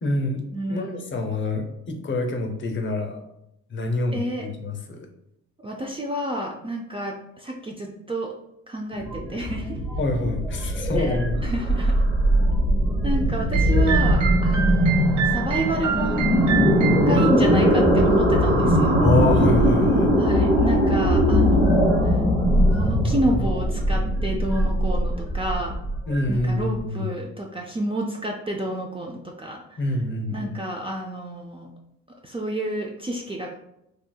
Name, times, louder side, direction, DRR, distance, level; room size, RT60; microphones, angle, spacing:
voice 1, 0.0-0.4 0.7-3.2 3.7-5.1 10.0-11.4 19.0-20.1 26.1-27.1 29.8-30.6, left 2 dB, 40° left, 5 dB, 0.6 m, -26 dB
voice 2, 0.5-1.1 4.1-4.5 5.6-8.3 8.7-9.8 11.0-11.9 13.0-16.3 17.0-19.0 20.2-22.2 22.7-25.7 26.3-29.8 30.3-31.7 32.2-33.5, right 1 dB, 20° right, -1 dB, 0.4 m, -29 dB
sound 1, 8.9-26.7, equal, 5° left, 0.9 m, -20 dB
sound 2, 13.5-17.3, right 9 dB, 75° right, 0.6 m, -28 dB
4.1 x 2.6 x 2.2 m, 0.81 s
cardioid pair, 90°, 30 cm